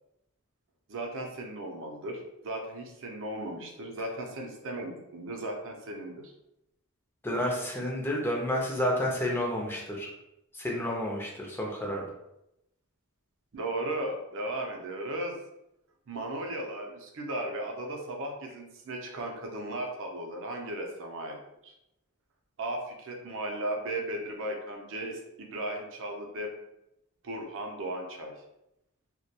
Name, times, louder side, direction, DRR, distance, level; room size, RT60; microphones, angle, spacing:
voice 1, 0.9-6.3 13.5-15.4 16.1-21.4 21.6-21.7 22.6-26.5 27.2-28.3, right 1 dB, 60° right, 2 dB, 0.5 m, -36 dB
voice 2, 7.2-10.1 10.6-12.0, left 1 dB, 10° left, -2 dB, 0.5 m, -30 dB
2.2 x 2.1 x 2.7 m, 0.86 s
head